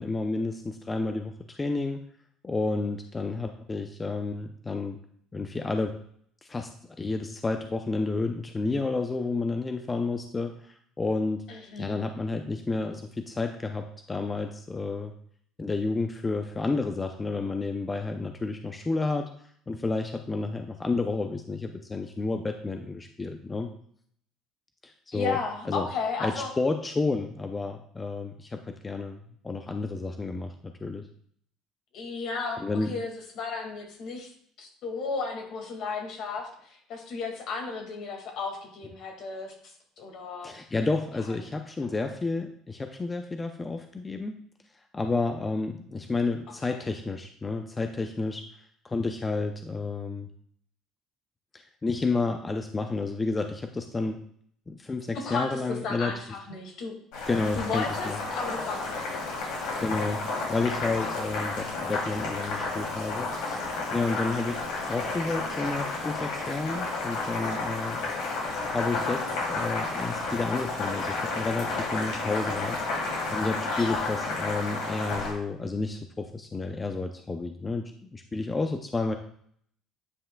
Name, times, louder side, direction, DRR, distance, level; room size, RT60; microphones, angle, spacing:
voice 1, 0.0-2.0 2.4-5.0 5.3-6.0 6.4-6.7 7.0-11.4 11.8-15.1 15.6-19.3 19.7-23.7 24.8-25.4 25.7-25.9 26.2-31.1 32.6-32.9 40.4-44.4 44.9-48.5 48.8-50.3 51.5-54.2 54.7-56.2 57.3-58.2 59.8-63.6 63.9-68.0 68.7-72.8 73.1-79.2, left 3 dB, 20° left, 5 dB, 0.5 m, -31 dB
voice 2, 11.5-12.0 25.1-26.5 31.9-34.3 34.6-40.6 41.3-41.4 46.6-46.8 55.1-56.9 57.6-59.5 60.9-61.3 73.7-74.1, left 4 dB, 65° left, 2 dB, 2.0 m, -34 dB
Boiling, 57.1-75.3, left 3 dB, 80° left, 2.8 m, -31 dB
9.6 x 5.5 x 2.3 m, 0.64 s
supercardioid pair, 100°, 0 cm